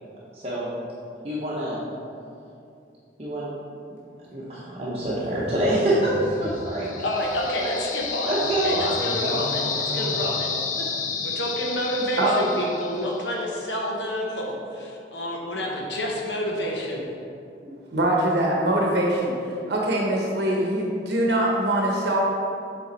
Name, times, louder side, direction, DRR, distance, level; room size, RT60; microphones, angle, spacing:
voice 1, 0.3-0.7 1.2-1.8 3.2-3.5 4.3-6.9 8.2-8.9 9.2-9.5 9.9-10.3 10.8-10.9, right 1 dB, 35° right, -7 dB, 0.8 m, -26 dB
sound 1, 4.9-7.6 8.0-10.9, equal, 15° left, 1.0 m, -38 dB
sound 2, 6.4-13.4, left 5 dB, 45° left, 0.5 m, -31 dB
voice 2, 7.0-10.6 11.2-17.0, left 1 dB, 80° left, -1 dB, 1.0 m, -29 dB
voice 3, 17.9-19.3 19.7-22.2, right 1 dB, 65° right, -2 dB, 0.8 m, -23 dB
7.3 x 3.5 x 4.0 m, 2.5 s
head